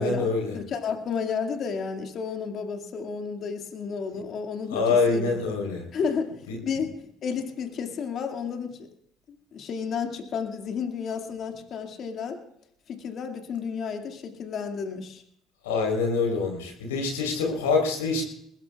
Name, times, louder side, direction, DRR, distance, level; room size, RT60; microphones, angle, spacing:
voice 1, 0.0-0.6 4.7-5.8 6.5-6.6 15.6-18.2, left 4 dB, 85° left, 2 dB, 3.9 m, -25 dB
voice 2, 0.5-5.3 5.9-6.3 6.6-7.0 7.2-8.9 9.3-12.4 12.9-15.2, left 6 dB, 55° left, 4 dB, 2.2 m, -32 dB
22.5 x 19.5 x 2.4 m, 0.70 s
hypercardioid pair, 60°, 0 cm